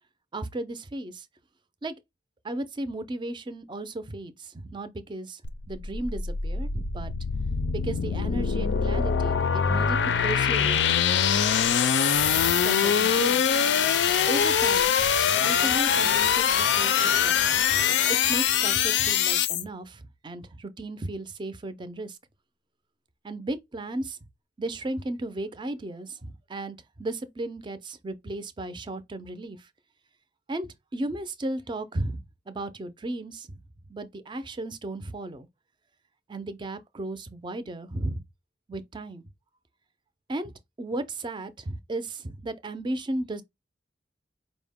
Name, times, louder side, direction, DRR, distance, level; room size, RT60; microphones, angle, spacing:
voice 1, 0.3-1.3 1.8-1.9 2.4-5.4 5.7-7.1 7.7-10.9 12.2-13.4 14.2-15.1 15.4-18.0 18.2-22.2 23.2-24.2 24.6-29.7 30.5-32.2 32.5-33.6 33.9-35.5 36.3-38.2 38.7-39.2 40.3-40.5 40.8-43.4, right 2 dB, 25° right, 0.4 m, -35 dB
sound 1, 5.4-19.6, left 7 dB, 70° left, 0.4 m, -23 dB
4.8 x 2.1 x 3.5 m
head